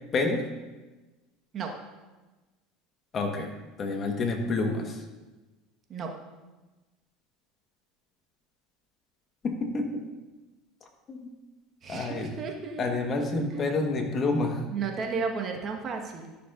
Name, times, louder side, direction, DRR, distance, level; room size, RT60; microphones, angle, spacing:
voice 1, 0.1-0.5 3.1-5.0 9.4-10.0 11.1-11.3 11.9-12.3 12.8-14.6, left 3 dB, 40° left, 4 dB, 1.4 m, -28 dB
voice 2, 11.8-12.8 13.1-13.6 14.7-16.4, right 5 dB, 40° right, 2 dB, 1.4 m, -34 dB
13.0 x 6.7 x 2.6 m, 1.2 s
hypercardioid pair, 85°, 0 cm